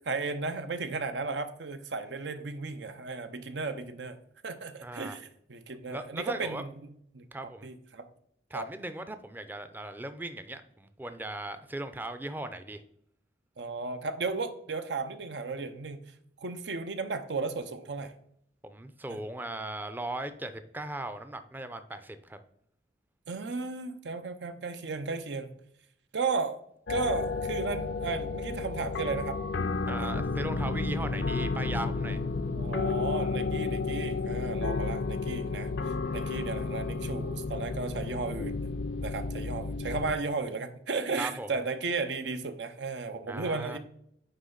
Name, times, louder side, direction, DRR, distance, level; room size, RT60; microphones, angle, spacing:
voice 1, 0.0-4.2 4.4-6.7 7.1-7.3 7.6-8.1 8.5-8.7 13.6-16.0 16.4-18.1 19.1-19.2 23.3-25.5 26.1-26.6 26.9-29.4 29.9-30.1 32.5-38.6 39.0-43.8, right 4 dB, 90° right, 9 dB, 0.7 m, -34 dB
voice 2, 4.8-5.2 5.9-6.6 7.3-7.7 8.5-12.8 18.6-22.4 29.9-32.2 36.0-36.4 41.2-41.5 43.3-43.8, right 1 dB, 10° right, 10 dB, 0.4 m, -38 dB
sound 1, 26.9-40.1, left 4 dB, 80° left, 0.5 m, -32 dB
9.3 x 3.4 x 3.8 m, 0.70 s
head